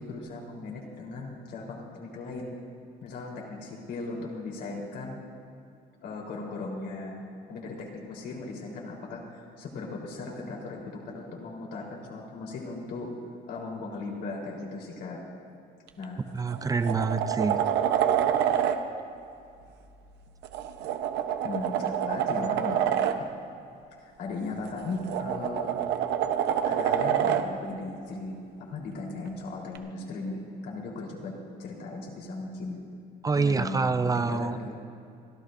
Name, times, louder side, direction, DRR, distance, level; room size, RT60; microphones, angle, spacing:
voice 1, 0.0-2.5 3.0-5.2 6.0-7.2 7.5-13.1 13.5-15.2 16.0-16.2 18.0-18.1 21.4-22.8 24.0-26.1 26.7-32.8 33.3-34.8, left 3 dB, 75° left, -2 dB, 3.9 m, -37 dB
sound 1, 15.9-16.0 16.5-18.8 20.4-23.2 24.7-27.5 29.8-29.9, right 9 dB, 90° right, 1.0 m, -27 dB
voice 2, 16.3-17.6 33.2-34.6, right 4 dB, 20° right, 11 dB, 0.5 m, -26 dB
29.5 x 13.5 x 2.6 m, 2.5 s
cardioid pair, 110°, 17 cm